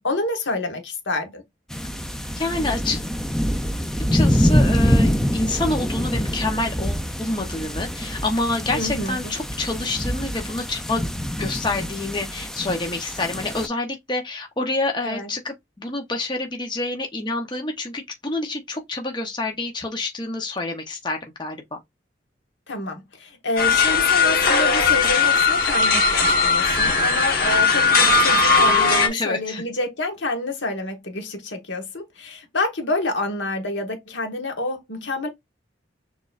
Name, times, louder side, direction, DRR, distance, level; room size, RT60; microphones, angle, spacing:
voice 1, 0.0-1.4 8.7-9.3 15.0-15.3 22.7-35.3, left 2 dB, 75° left, 1.3 m, -28 dB
sound 1, 1.7-13.7, equal, 5° left, 0.4 m, -25 dB
voice 2, 2.4-3.0 4.1-11.0 11.4-21.8 29.1-29.6, left 2 dB, 25° left, 0.8 m, -27 dB
sound 2, 23.6-29.1, left 4 dB, 50° left, 1.2 m, -18 dB
6.6 x 3.1 x 2.4 m
head